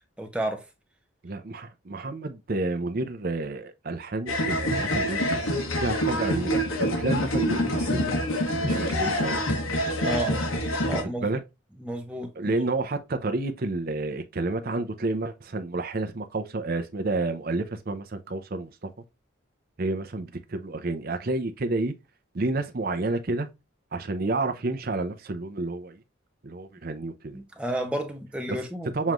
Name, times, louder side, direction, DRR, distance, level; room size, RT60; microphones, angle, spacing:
voice 1, 0.2-0.6 10.0-10.4 10.9-11.3 11.8-12.6 27.3-29.1, right 1 dB, 5° right, 1.0 m, -32 dB
voice 2, 1.2-5.4 5.7-8.2 8.6-9.4 11.2-11.4 12.4-18.9 19.8-21.9 22.3-23.5 23.9-26.0 26.4-27.4 28.9-29.1, right 2 dB, 45° right, 0.6 m, -30 dB
sound 1, 4.3-11.0, equal, 90° left, 1.3 m, -26 dB
7.2 x 3.0 x 2.4 m
head